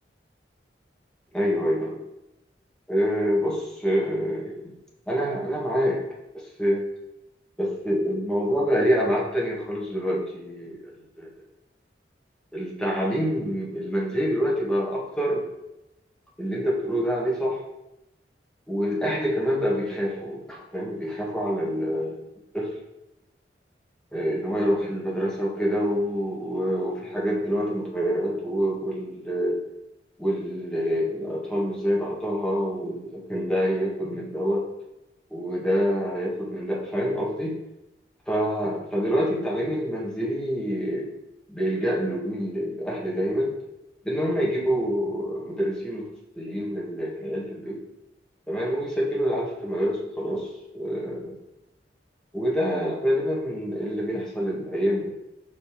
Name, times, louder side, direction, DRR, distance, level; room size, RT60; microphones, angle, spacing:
voice 1, 1.3-2.0 2.9-4.7 5.1-6.0 6.3-6.9 7.6-10.9 11.2-11.3 12.5-15.5 16.4-17.6 18.7-22.2 22.5-22.7 24.1-29.6 30.2-34.7 35.3-37.6 38.3-41.2 41.5-43.6 44.0-46.1 46.4-47.8 48.5-50.5 50.7-51.3 52.3-55.1, equal, 5° left, -5 dB, 1.5 m, -26 dB
7.0 x 5.4 x 3.6 m, 0.91 s
head